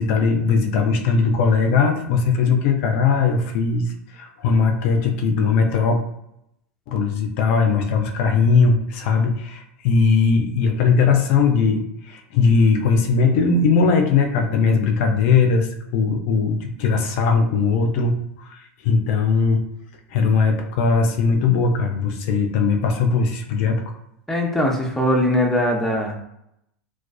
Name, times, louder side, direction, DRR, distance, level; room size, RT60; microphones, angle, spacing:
voice 1, 0.0-6.0 6.9-19.6 20.1-23.8, left 5 dB, 60° left, 4 dB, 0.4 m, -19 dB
voice 2, 24.3-26.2, left 1 dB, 5° left, 0 dB, 0.5 m, -21 dB
2.4 x 2.3 x 2.2 m, 0.78 s
hypercardioid pair, 105°, 8 cm